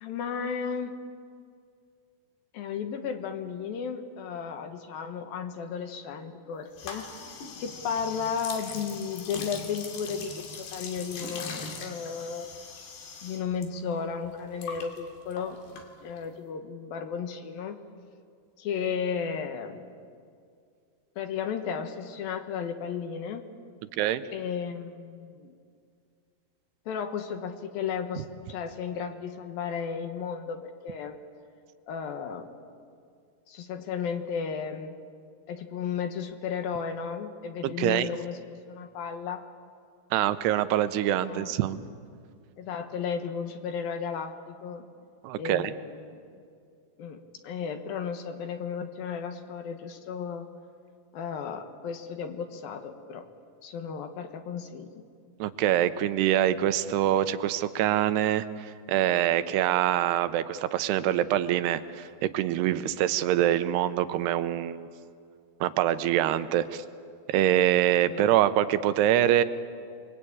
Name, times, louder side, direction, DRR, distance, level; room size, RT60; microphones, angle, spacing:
voice 1, 0.0-0.9 2.5-7.1 7.6-12.5 13.2-15.6 16.0-17.8 18.6-19.8 21.2-23.4 24.3-25.5 26.9-31.2 31.9-32.5 33.5-34.9 35.5-38.4 38.7-39.4 41.2-41.5 42.6-44.8 45.4-46.2 47.0-50.5 51.1-53.3 53.6-55.0 68.1-68.2, left 6 dB, 70° left, 7 dB, 2.9 m, -34 dB
sound 1, 6.8-13.7 13.9-16.3, left 4 dB, 90° left, 4.6 m, -41 dB
voice 2, 37.6-38.1 40.1-41.8 45.2-45.7 55.4-64.9 65.6-66.8 67.3-69.4, right 12 dB, 85° right, 12 dB, 2.9 m, -25 dB
29.0 x 22.5 x 8.7 m, 2.3 s
omnidirectional pair, 4.6 m